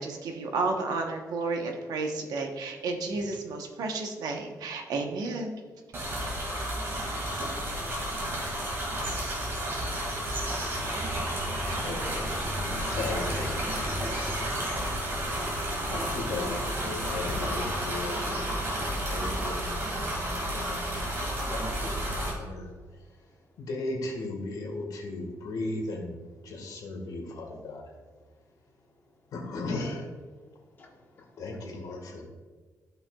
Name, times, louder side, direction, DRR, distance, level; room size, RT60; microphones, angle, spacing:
voice 1, 0.0-5.6 9.7-9.8, right 3 dB, 85° right, 3 dB, 1.1 m, -32 dB
sound 1, 5.9-22.3, equal, 40° right, 2.2 m, -31 dB
voice 2, 11.8-12.4 12.8-14.4 15.9-22.7 23.6-27.8 29.3-30.1 31.4-32.3, left 2 dB, 75° left, 1 dB, 1.7 m, -37 dB
voice 3, 13.2-13.9 22.6-23.1 30.6-31.4 32.0-32.3, left 3 dB, 30° left, -1 dB, 1.4 m, -51 dB
13.0 x 5.6 x 2.4 m, 1.4 s
wide cardioid pair, 170°, 7 cm